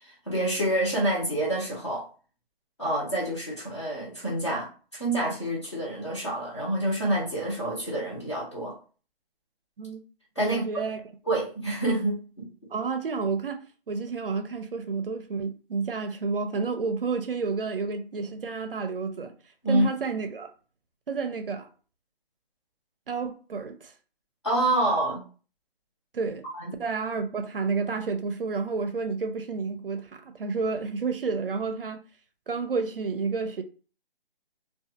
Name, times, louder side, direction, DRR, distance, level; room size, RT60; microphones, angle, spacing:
voice 1, 0.0-2.1 2.8-8.8 10.4-10.6 11.3-12.5 19.6-19.9 24.4-25.2 26.5-26.8, right 1 dB, 30° left, 0.7 m, -27 dB
voice 2, 10.5-11.0 12.7-19.3 19.7-20.5 21.1-21.7 23.1-23.9 26.1-26.4 26.8-32.0 32.5-33.6, right 4 dB, 60° right, 0.5 m, -30 dB
2.4 x 2.3 x 2.7 m
hypercardioid pair, 175°, 31 cm